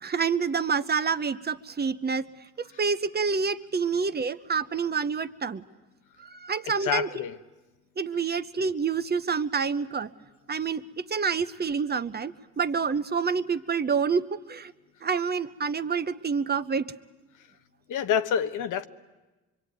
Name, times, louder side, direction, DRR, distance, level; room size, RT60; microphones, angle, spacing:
voice 1, 0.0-2.3 2.6-5.7 6.2-7.1 8.0-10.1 10.5-14.7 15.0-16.9, right 5 dB, 35° right, 11 dB, 1.0 m, -28 dB
voice 2, 6.6-7.3 17.9-18.9, left 8 dB, 85° left, 9 dB, 1.2 m, -27 dB
25.0 x 23.5 x 9.3 m, 1.1 s
cardioid pair, 90°, 30 cm